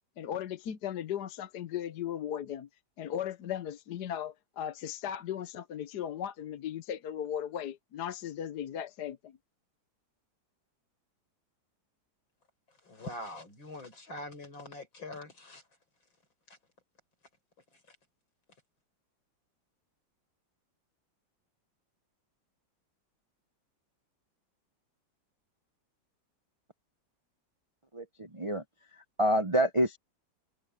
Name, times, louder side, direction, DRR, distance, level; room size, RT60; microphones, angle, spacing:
voice 1, 0.2-2.7 3.0-9.3, left 10 dB, 60° left, 1.4 m, -37 dB
voice 2, 12.9-15.6 17.9-18.0, left 1 dB, 80° left, 6.8 m, -43 dB
voice 3, 27.9-28.6 29.2-30.0, right 1 dB, 25° right, 0.6 m, -27 dB
omnidirectional pair, 2.1 m